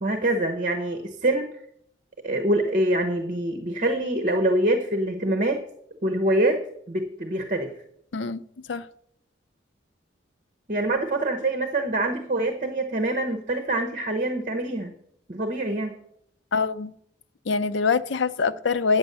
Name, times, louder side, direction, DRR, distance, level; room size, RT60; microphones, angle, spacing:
voice 1, 0.0-1.6 2.2-5.6 6.0-6.6 6.9-7.7 10.7-14.9 15.3-16.0, right 1 dB, 45° right, 1.0 m, -25 dB
voice 2, 8.1-8.4 8.7-8.9 16.5-16.9 17.5-19.0, left 5 dB, 80° left, 0.6 m, -24 dB
9.9 x 8.1 x 6.8 m
head